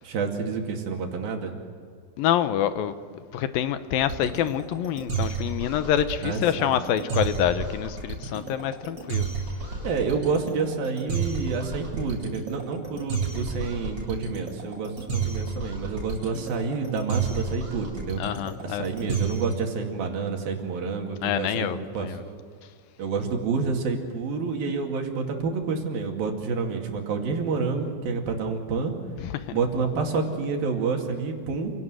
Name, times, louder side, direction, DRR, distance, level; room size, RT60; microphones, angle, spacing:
voice 1, 0.0-1.5 6.2-6.7 9.8-18.2 18.6-21.7 21.9-22.4 23.0-28.9 29.5-31.7, right 4 dB, 75° right, 2 dB, 4.2 m, -28 dB
voice 2, 2.2-3.0 3.3-9.3 18.2-18.9 21.2-22.2 29.2-29.6, left 10 dB, 80° left, 11 dB, 2.6 m, -26 dB
sound 1, 4.0-19.6, right 5 dB, 30° right, 8.0 m, -31 dB
28.0 x 17.5 x 7.9 m, 2.1 s
omnidirectional pair, 4.2 m